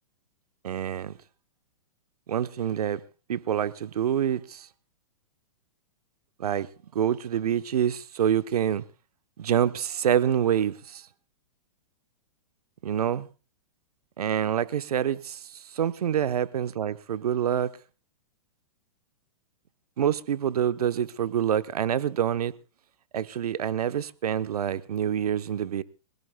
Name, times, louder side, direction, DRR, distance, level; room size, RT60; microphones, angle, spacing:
voice 1, 0.6-1.2 2.3-3.0 3.3-4.7 6.4-8.9 9.4-11.1 12.8-13.3 14.2-17.7 20.0-22.5 23.1-25.8, right 9 dB, 85° right, 1.0 m, -26 dB
24.5 x 17.5 x 2.3 m
hypercardioid pair, 160°, 19 cm